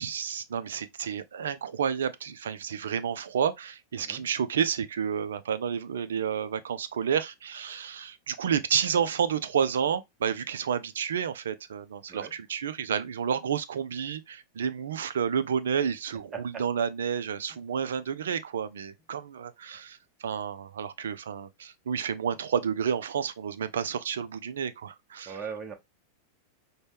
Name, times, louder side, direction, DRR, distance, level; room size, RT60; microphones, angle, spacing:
voice 1, 0.0-25.4, right 7 dB, 65° right, 0.4 m, -30 dB
voice 2, 25.3-25.7, right 6 dB, 25° right, 0.9 m, -39 dB
5.2 x 2.2 x 3.3 m
figure-of-eight pair, 90°, 0 cm